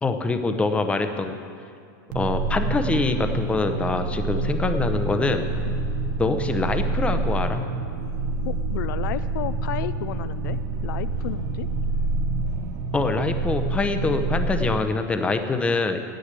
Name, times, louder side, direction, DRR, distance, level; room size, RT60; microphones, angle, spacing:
voice 1, 0.0-1.4 2.1-5.4 6.2-7.6 12.9-16.0, left 3 dB, 10° left, 8 dB, 0.7 m, -24 dB
sound 1, 2.1-14.8, right 3 dB, 70° right, 1.1 m, -27 dB
voice 2, 8.4-11.7 15.5-15.6, left 12 dB, 70° left, 14 dB, 0.4 m, -33 dB
10.0 x 8.0 x 8.2 m, 2.4 s
supercardioid pair, 135°, 11 cm